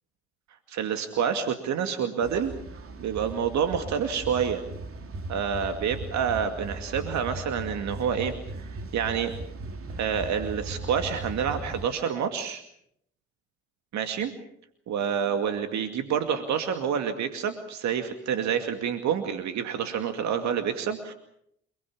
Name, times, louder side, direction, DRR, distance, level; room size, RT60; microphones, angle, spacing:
voice 1, 0.7-2.5 3.0-4.6 5.3-9.3 10.0-12.6 13.9-14.3 14.9-21.1, right 7 dB, 65° right, 7 dB, 2.3 m, -28 dB
sound 1, 2.2-11.9, right 2 dB, 45° right, 3.1 m, -38 dB
28.5 x 20.5 x 7.2 m, 0.74 s
hypercardioid pair, 50°, 30 cm